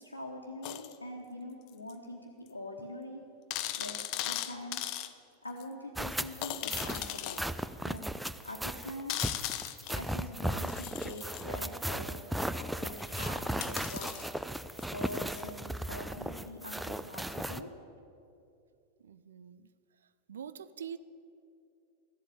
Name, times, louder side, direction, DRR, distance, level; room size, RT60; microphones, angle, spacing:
voice 1, 0.0-3.2 3.8-4.9 5.4-7.5 7.8-8.1 8.4-9.2 9.9-12.2 12.8-12.9 13.2-14.3 14.9-17.7, left 1 dB, 80° left, -2 dB, 1.2 m, -44 dB
sound 1, 0.6-1.0 1.9-2.0 2.5-2.6 2.8-2.9 3.5-5.1 5.6-5.7 6.4-7.4 8.0-8.1 9.1-10.0 10.6-11.4 12.4-15.5 17.3-17.4, left 13 dB, 40° left, 0.6 m, -38 dB
sound 2, 6.0-17.6, right 1 dB, 5° right, 0.4 m, -36 dB
voice 2, 19.0-19.7 20.0-21.0, right 8 dB, 65° right, 14 dB, 0.4 m, -45 dB
13.5 x 8.2 x 8.3 m, 2.6 s
figure-of-eight pair, 90°, 0 cm